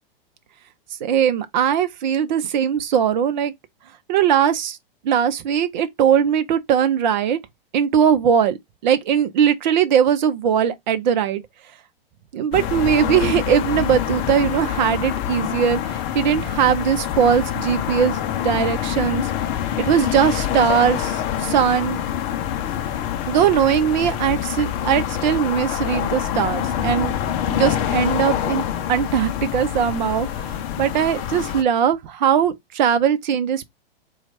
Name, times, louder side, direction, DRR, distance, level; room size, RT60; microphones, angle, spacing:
voice 1, 1.0-3.5 4.1-4.8 5.0-7.4 7.7-8.6 8.8-11.4 12.3-18.2 18.4-19.3 19.8-22.0 23.3-27.2 27.5-33.6, right 8 dB, 50° right, 0.7 m, -20 dB
sound 1, 12.5-31.6, left 10 dB, 30° left, 0.6 m, -25 dB
4.4 x 2.4 x 4.1 m
figure-of-eight pair, 110°, 30 cm